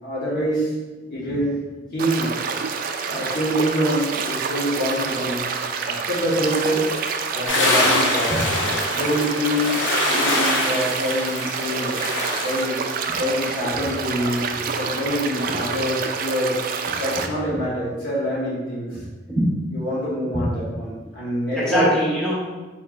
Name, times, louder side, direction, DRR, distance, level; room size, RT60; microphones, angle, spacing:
voice 1, 0.0-0.7 1.1-1.6 1.9-2.3 3.0-5.4 5.8-6.9 7.3-8.4 8.9-9.7 10.1-12.0 12.4-12.8 13.1-16.6 16.9-18.9 19.7-21.9, equal, 55° left, -7 dB, 1.2 m, -25 dB
voice 2, 1.0-1.5 8.3-8.4 19.3-19.6 20.3-20.4 21.0-21.1 21.5-22.5, equal, 5° left, -9 dB, 1.5 m, -24 dB
sound 1, 2.0-17.3, right 5 dB, 50° right, 0.3 m, -28 dB
sound 2, 7.5-12.6, left 1 dB, 90° left, 0.9 m, -24 dB
4.4 x 4.3 x 2.4 m, 1.2 s
head